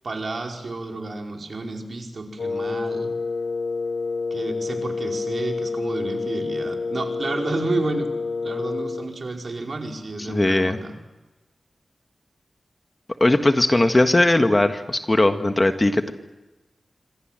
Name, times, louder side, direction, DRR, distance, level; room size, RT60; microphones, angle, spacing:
voice 1, 0.0-3.1 4.3-8.1 8.4-10.9, right 2 dB, 55° right, 2 dB, 4.8 m, -30 dB
Wind instrument woodwind instrument, 2.4-9.1, left 4 dB, 85° left, 2.8 m, -28 dB
voice 2, 10.2-10.8 13.2-16.1, left 1 dB, 25° left, 7 dB, 1.6 m, -19 dB
26.5 x 25.5 x 7.6 m, 1.1 s
wide cardioid pair, 100°, 0 cm